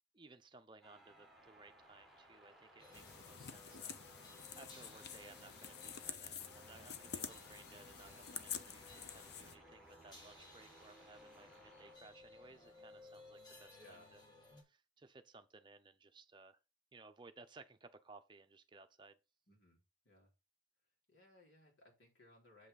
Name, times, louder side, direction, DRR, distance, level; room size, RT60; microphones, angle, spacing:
voice 1, 0.0-14.2 14.6-16.6 16.9-19.2, right 3 dB, 25° right, 0.6 m, -60 dB
sound 1, 0.8-6.1 6.4-12.0, right 1 dB, ahead, 1.5 m, -63 dB
sound 2, 2.8-14.6, left 2 dB, 20° left, 1.7 m, -60 dB
sound 3, 2.9-9.6, left 8 dB, 55° left, 0.7 m, -49 dB
voice 2, 6.7-7.0 7.3-7.5 13.7-14.1 19.5-20.3 21.1-22.7, left 1 dB, 85° left, 4.2 m, -64 dB
7.6 x 5.8 x 4.1 m
head